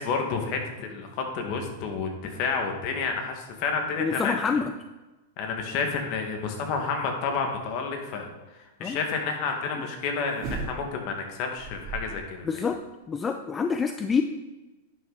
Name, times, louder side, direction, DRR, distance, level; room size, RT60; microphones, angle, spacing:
voice 1, 0.0-4.3 5.4-8.3 8.8-12.5, left 5 dB, 45° left, 3 dB, 1.8 m, -30 dB
voice 2, 4.0-4.7 8.8-9.0 12.4-12.8 13.1-14.2, left 5 dB, 15° left, 7 dB, 0.4 m, -26 dB
sound 1, 10.4-11.1 11.6-12.4 12.7-12.8, right 4 dB, 35° right, 2.7 m, -35 dB
10.5 x 5.9 x 4.1 m, 1.1 s
hypercardioid pair, 135°, 0 cm